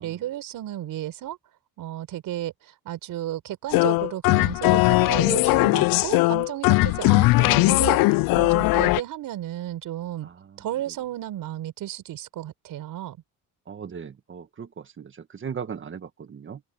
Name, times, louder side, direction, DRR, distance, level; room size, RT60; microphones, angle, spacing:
voice 1, 0.0-1.4 1.8-2.5 2.8-8.0 8.3-10.3 10.6-13.2, right 13 dB, 75° right, 4.9 m, -33 dB
sound 1, 3.7-9.0, left 22 dB, 85° left, 0.5 m, -19 dB
voice 2, 10.2-10.6 13.7-16.6, right 7 dB, 35° right, 1.6 m, -38 dB
open air
cardioid pair, 115°, 34 cm